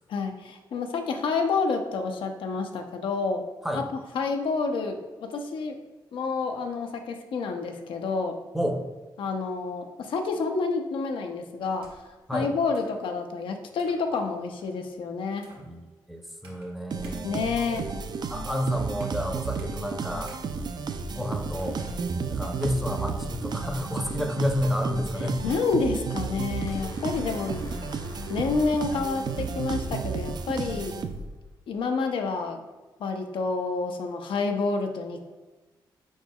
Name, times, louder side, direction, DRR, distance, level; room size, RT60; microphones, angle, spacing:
voice 1, 0.1-3.5 3.7-3.8 4.1-5.8 6.1-8.4 9.2-12.0 12.3-15.5 17.2-17.9 25.4-27.6 28.3-31.0 31.7-32.6 33.0-35.2, left 4 dB, 75° left, 4 dB, 0.4 m, -29 dB
sound 1, 11.6-12.2 12.7-13.0 13.7-14.0 14.6-14.9 15.4-15.7 16.4-16.7 17.0-17.2 17.6-19.3 19.6-19.7 20.3-20.4 20.9-21.1 21.6-22.6, right 1 dB, 85° right, 0.9 m, -50 dB
voice 2, 15.6-17.4 18.3-20.3 21.1-21.8 22.3-25.6, equal, 5° right, 3 dB, 0.6 m, -30 dB
sound 2, 16.9-31.5, right 5 dB, 55° right, 0.4 m, -33 dB
sound 3, 26.7-30.9, left 2 dB, 40° left, 0.7 m, -44 dB
4.5 x 4.3 x 2.3 m, 1.2 s
cardioid pair, 65°, 9 cm